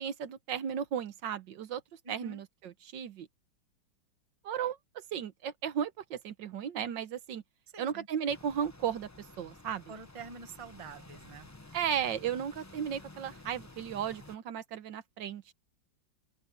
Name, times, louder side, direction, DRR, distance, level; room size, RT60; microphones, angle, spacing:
voice 1, 0.0-1.8 2.1-3.3 4.4-7.4 7.8-9.1 9.4-9.8 11.7-15.5, right 8 dB, 70° right, 1.6 m, -35 dB
voice 2, 2.0-2.4 7.7-8.1 9.9-11.5, right 4 dB, 20° right, 1.0 m, -47 dB
sound 1, 8.3-14.4, left 2 dB, 25° left, 0.3 m, -52 dB
open air
omnidirectional pair, 2.2 m